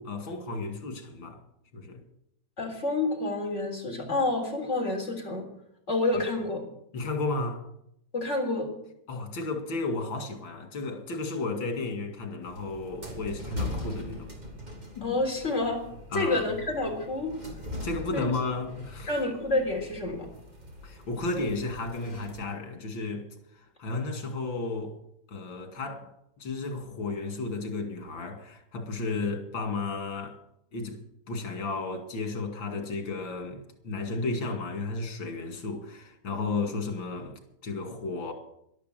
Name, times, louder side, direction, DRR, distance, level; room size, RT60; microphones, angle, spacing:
voice 1, 0.0-1.4 1.7-2.0 6.2-6.3 6.9-7.7 9.1-14.3 15.0-15.1 16.1-16.5 17.8-19.1 20.8-23.3 23.5-25.0 25.3-26.1 26.4-30.4 30.7-31.0 31.3-38.3, left 3 dB, 85° left, 3.0 m, -33 dB
voice 2, 2.6-5.5 5.9-6.7 8.1-8.7 15.0-15.8 16.1-17.3 18.1-18.2 19.1-20.3, left 2 dB, 35° left, 3.9 m, -28 dB
sound 1, 12.4-22.4, left 1 dB, 20° right, 3.0 m, -41 dB
12.5 x 12.0 x 7.6 m
omnidirectional pair, 2.0 m